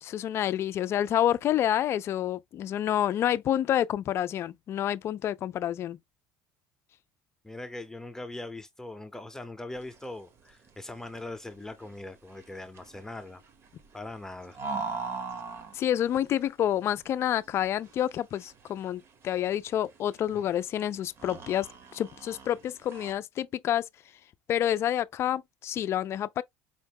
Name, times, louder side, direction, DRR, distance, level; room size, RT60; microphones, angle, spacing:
voice 1, 0.0-6.0 15.7-21.7 21.9-23.9 24.5-26.4, left 11 dB, 50° left, 0.4 m, -28 dB
voice 2, 7.4-13.4 13.9-14.6, left 2 dB, 10° left, 0.7 m, -41 dB
sound 1, 9.7-23.1, right 4 dB, 45° right, 1.2 m, -42 dB
5.1 x 2.1 x 3.5 m
supercardioid pair, 90°, 6 cm